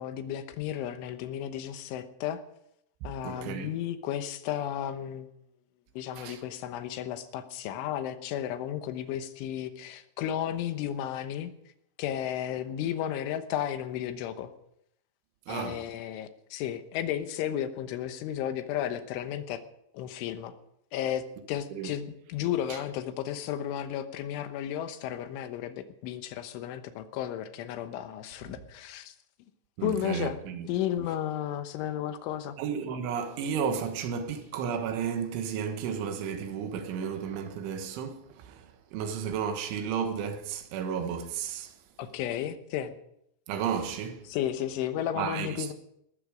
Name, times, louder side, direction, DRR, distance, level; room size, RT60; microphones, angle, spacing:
voice 1, 0.0-2.4 3.0-5.3 6.0-11.5 12.0-14.5 15.5-19.6 19.9-20.5 20.9-29.2 29.8-30.4 30.7-32.6 42.0-43.0 44.3-45.7, left 10 dB, 85° left, 3.5 m, -33 dB
voice 2, 3.2-3.7 6.2-6.4 15.5-15.8 21.7-21.9 22.7-22.8 29.8-30.7 32.6-41.7 43.5-44.3 45.2-45.7, right 7 dB, 80° right, 3.8 m, -33 dB
18.5 x 14.0 x 5.1 m
omnidirectional pair, 5.4 m